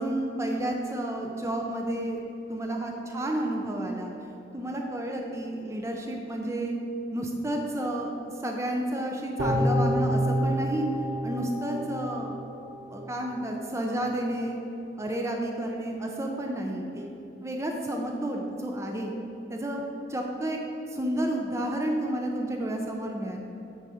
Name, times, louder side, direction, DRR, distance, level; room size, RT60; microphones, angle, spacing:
voice 1, 0.0-2.2 2.5-4.1 4.5-6.8 7.1-10.8 11.2-12.3 12.9-14.6 15.0-17.1 17.4-19.1 19.5-19.8 20.1-20.6 20.9-23.4, right 1 dB, 15° right, 1 dB, 0.5 m, -31 dB
sound 1, 9.4-12.7 13.1-13.2, equal, 65° right, 1.4 m, -28 dB
9.5 x 4.0 x 4.9 m, 2.9 s
head